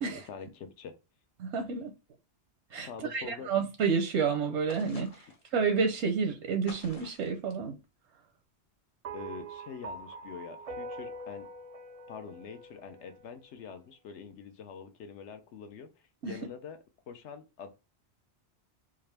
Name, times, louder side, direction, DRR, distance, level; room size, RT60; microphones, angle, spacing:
voice 1, 0.0-0.9 2.8-3.5 9.1-11.5 12.1-15.9 16.2-16.8 17.1-17.7, left 6 dB, 85° left, 1.0 m, -45 dB
voice 2, 1.4-1.9 2.7-5.1 5.5-7.8 16.2-16.4, right 5 dB, 85° right, 0.9 m, -30 dB
sound 1, 4.7-5.5 6.7-7.4, left 2 dB, 40° left, 0.6 m, -49 dB
sound 2, 9.0-13.5, right 2 dB, 60° right, 0.4 m, -44 dB
3.7 x 2.4 x 3.3 m
omnidirectional pair, 1.1 m